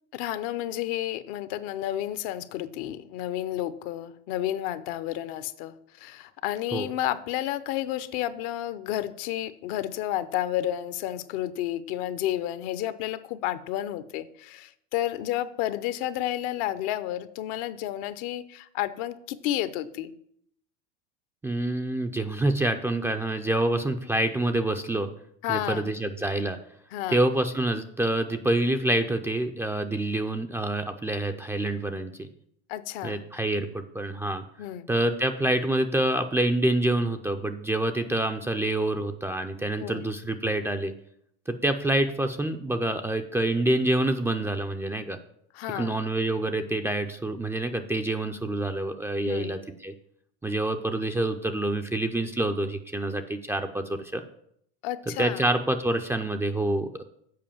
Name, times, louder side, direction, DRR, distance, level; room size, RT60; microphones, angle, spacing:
voice 1, 0.1-20.1 25.4-25.9 26.9-27.2 32.7-33.2 34.6-34.9 39.8-40.1 45.5-45.9 49.2-49.6 54.8-55.5, left 13 dB, 60° left, 14 dB, 0.7 m, -31 dB
voice 2, 21.4-25.1 25.5-26.6 27.1-32.3 33.0-34.4 34.9-40.9 41.5-45.2 45.8-49.9 50.4-54.2 55.2-57.0, right 1 dB, 10° right, 6 dB, 0.4 m, -27 dB
7.6 x 4.9 x 7.0 m, 0.70 s
supercardioid pair, 110°, 33 cm